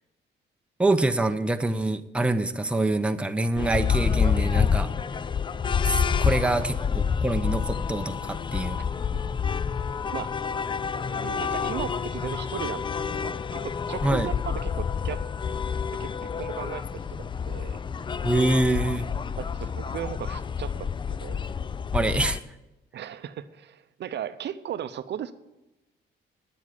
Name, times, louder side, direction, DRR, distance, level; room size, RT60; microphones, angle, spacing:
voice 1, 0.8-4.9 5.8-8.8 14.0-14.3 18.2-19.1 21.9-22.4, right 2 dB, 5° right, 8 dB, 0.7 m, -25 dB
sound 1, 3.6-22.4, left 6 dB, 25° left, 0.4 m, -28 dB
voice 2, 11.0-15.2 16.0-17.8 19.4-21.4 22.9-25.3, right 10 dB, 60° right, 13 dB, 0.6 m, -37 dB
9.2 x 7.3 x 8.4 m, 0.98 s
cardioid pair, 90°, 20 cm